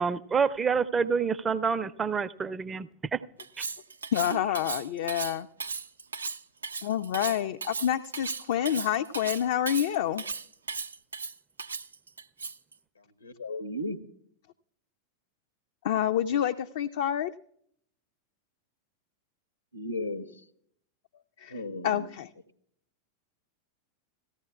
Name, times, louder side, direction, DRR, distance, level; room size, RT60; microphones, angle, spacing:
voice 1, 0.0-3.2, right 5 dB, 20° right, 13 dB, 0.4 m, -27 dB
Cutlery silverware, 3.4-12.7, right 4 dB, 75° right, 0.4 m, -36 dB
voice 2, 4.1-5.5 6.8-10.2 15.8-17.3 21.4-22.3, left 10 dB, 55° left, 8 dB, 0.3 m, -28 dB
voice 3, 13.2-14.0 19.7-20.2 21.5-22.1, left 1 dB, 80° left, 11 dB, 0.8 m, -34 dB
17.5 x 14.5 x 2.3 m, 0.67 s
figure-of-eight pair, 90°, 0 cm